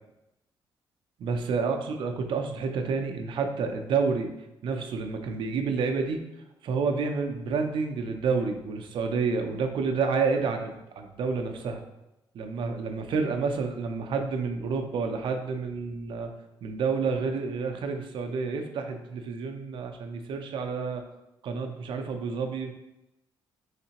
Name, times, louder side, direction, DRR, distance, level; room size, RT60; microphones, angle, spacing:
voice 1, 1.2-4.3 4.6-6.2 6.6-11.8 12.3-16.3 16.6-21.0 21.4-22.7, right 5 dB, 65° right, 5 dB, 0.5 m, -29 dB
3.7 x 3.2 x 2.9 m, 0.91 s
cardioid pair, 120°, 9 cm